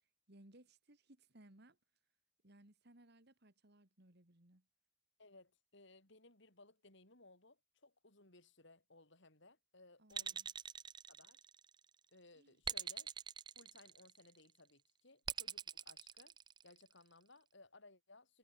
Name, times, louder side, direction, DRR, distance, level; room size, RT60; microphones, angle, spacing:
voice 1, 0.3-1.8 2.4-4.7 10.0-10.5 12.3-12.6, right 1 dB, 50° right, 2.6 m, -64 dB
voice 2, 5.2-10.4 11.1-11.4 12.1-13.1 13.5-16.4 16.6-18.4, left 2 dB, 60° left, 4.5 m, -63 dB
sound 1, 10.1-11.8 12.6-14.3 15.3-16.9, right 8 dB, 20° right, 0.4 m, -43 dB
head